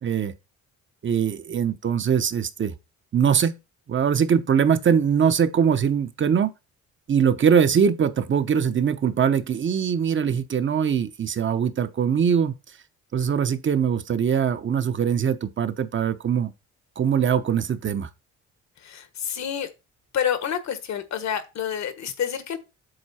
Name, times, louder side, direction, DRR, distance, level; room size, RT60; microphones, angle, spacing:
voice 1, 0.0-0.3 1.0-2.7 3.1-3.6 3.9-6.5 7.1-12.5 13.1-16.5 17.0-18.1, right 7 dB, 40° right, 0.9 m, -22 dB
voice 2, 18.8-19.7 20.1-22.6, left 8 dB, 65° left, 1.5 m, -28 dB
8.0 x 4.4 x 4.3 m
cardioid pair, 90°, 30 cm